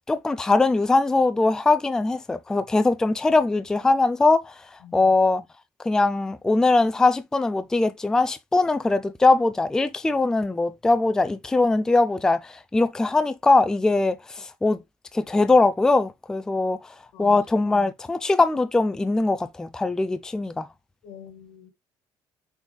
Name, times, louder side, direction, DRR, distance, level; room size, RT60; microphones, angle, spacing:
voice 1, 0.1-4.5 4.9-5.4 5.9-14.8 15.1-16.8 17.2-20.7, left 3 dB, 5° left, 0.3 m, -21 dB
voice 2, 4.8-5.1 17.1-17.4 21.0-21.7, left 9 dB, 80° left, 1.6 m, -45 dB
6.2 x 3.8 x 2.2 m
cardioid pair, 140°, 8 cm